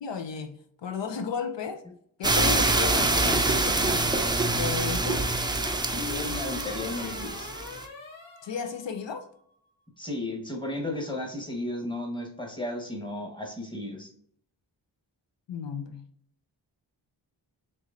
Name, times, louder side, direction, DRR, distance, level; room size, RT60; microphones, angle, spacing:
voice 1, 0.0-1.8 2.2-4.1 4.5-5.3 8.4-9.3 15.5-16.0, left 6 dB, 70° left, 0.5 m, -34 dB
sound 1, 2.2-7.8, right 2 dB, 10° right, 0.4 m, -25 dB
sound 2, 2.9-3.7 5.6-9.2, left 4 dB, 90° left, 1.1 m, -41 dB
voice 2, 5.9-7.5 10.0-14.1, left 1 dB, 10° left, 1.2 m, -34 dB
4.5 x 2.9 x 2.5 m
cardioid pair, 50°, 45 cm